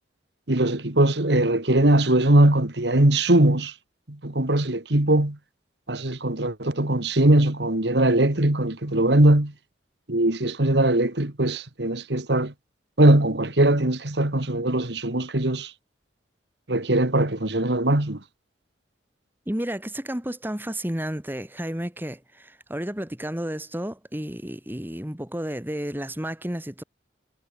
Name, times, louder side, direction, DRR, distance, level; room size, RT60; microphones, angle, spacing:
voice 1, 0.5-3.7 4.1-5.4 5.9-9.5 10.1-12.5 13.0-15.7 16.7-18.2, right 1 dB, 65° right, 2.1 m, -20 dB
voice 2, 19.5-26.8, right 1 dB, 10° right, 1.8 m, -32 dB
head